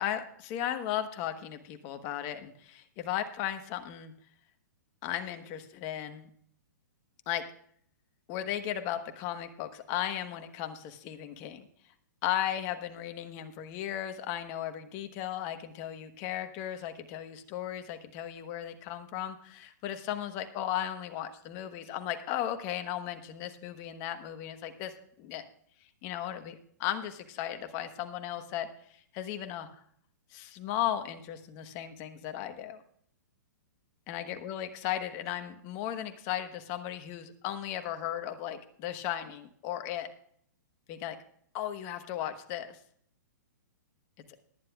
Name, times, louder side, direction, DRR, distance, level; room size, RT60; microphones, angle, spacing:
voice 1, 0.0-4.1 5.0-6.3 7.3-7.4 8.3-11.7 12.2-24.9 25.2-25.4 26.0-28.7 29.1-29.7 30.3-32.8 34.1-40.1 40.9-41.2 41.5-42.8, left 11 dB, 35° left, 8 dB, 1.2 m, -36 dB
19.5 x 9.8 x 2.4 m, 0.65 s
hypercardioid pair, 140°, 11 cm